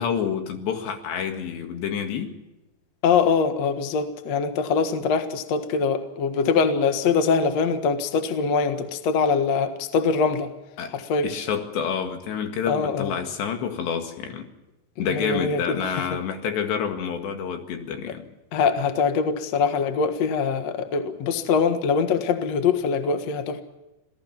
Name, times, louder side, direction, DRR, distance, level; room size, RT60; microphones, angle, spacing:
voice 1, 0.0-2.3 10.8-10.9 11.2-14.5 15.0-18.3, left 7 dB, 75° left, 5 dB, 4.0 m, -28 dB
voice 2, 3.0-10.5 10.9-11.3 12.7-13.1 15.1-15.8 18.5-23.6, left 5 dB, 55° left, 7 dB, 1.9 m, -23 dB
27.0 x 17.5 x 5.9 m, 0.99 s
omnidirectional pair, 5.2 m